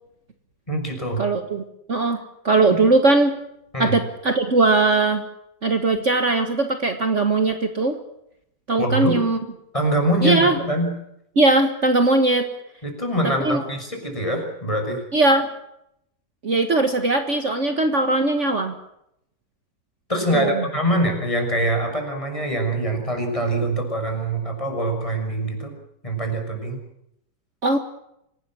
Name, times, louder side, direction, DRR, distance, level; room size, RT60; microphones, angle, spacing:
voice 1, 0.7-1.2 2.7-2.9 3.7-4.0 8.8-9.2 9.7-10.9 12.8-15.0 20.1-25.7 26.0-26.8, right 1 dB, 20° left, 3 dB, 6.4 m, -24 dB
voice 2, 1.2-1.6 1.9-3.3 3.8-5.3 5.6-8.0 8.7-9.4 10.2-10.6 11.4-12.5 13.5-13.6 15.1-15.5 16.4-18.8 20.3-20.6 27.6-27.8, right 2 dB, 45° right, 6 dB, 1.8 m, -19 dB
27.0 x 18.0 x 7.6 m, 0.79 s
omnidirectional pair, 1.8 m